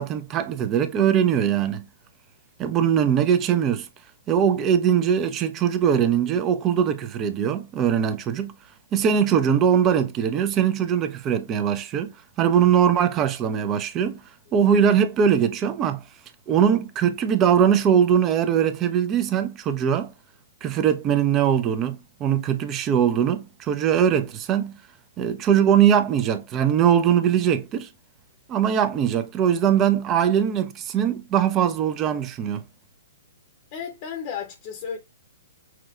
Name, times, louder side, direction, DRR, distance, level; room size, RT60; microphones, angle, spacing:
voice 1, 0.0-1.8 2.6-3.9 4.3-8.5 8.9-12.1 12.4-14.2 14.5-16.0 16.5-20.1 20.6-24.8 25.2-27.9 28.5-32.6, right 8 dB, 25° right, 0.5 m, -21 dB
voice 2, 33.7-35.0, left 7 dB, 40° left, 0.8 m, -33 dB
5.8 x 2.3 x 2.4 m
hypercardioid pair, 120°, 0 cm